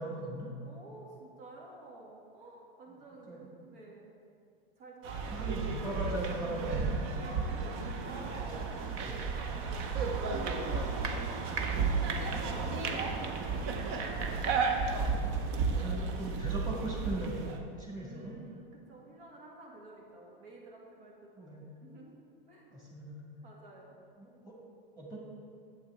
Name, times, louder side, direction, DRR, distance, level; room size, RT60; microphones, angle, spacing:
voice 1, 0.0-0.5 3.3-3.5 5.3-7.0 15.6-17.4 17.8-18.4 21.4-21.7 22.7-23.2 24.2-24.5 25.0-25.2, right 1 dB, 15° right, -4 dB, 1.9 m, -39 dB
voice 2, 0.6-4.1 4.8-6.1 6.6-9.9 10.2-14.5 15.0-15.2 15.7-16.3 17.9-22.7 23.4-24.0, right 2 dB, 65° right, -2 dB, 2.1 m, -51 dB
sound 1, 5.0-17.6, right 4 dB, 45° right, 0.9 m, -33 dB
8.6 x 7.6 x 3.4 m, 2.4 s
hypercardioid pair, 110°, 30 cm